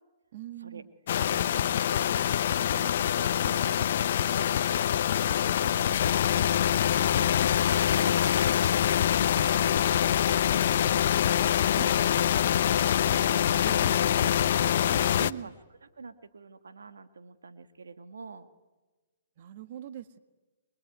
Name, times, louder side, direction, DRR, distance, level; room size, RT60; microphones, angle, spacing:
voice 1, 0.3-0.9 1.3-1.8 11.8-12.0 13.5-14.2 15.2-15.5 19.4-20.2, right 11 dB, 50° right, 12 dB, 1.8 m, -43 dB
sound 1, 1.1-15.3, left 10 dB, 60° left, 0.8 m, -25 dB
voice 2, 1.3-6.0 6.3-8.3 9.2-11.1 11.4-13.6 14.1-15.5 16.0-18.5, right 4 dB, 85° right, 11 dB, 1.7 m, -46 dB
26.0 x 22.5 x 9.4 m, 1.2 s
hypercardioid pair, 135°, 0 cm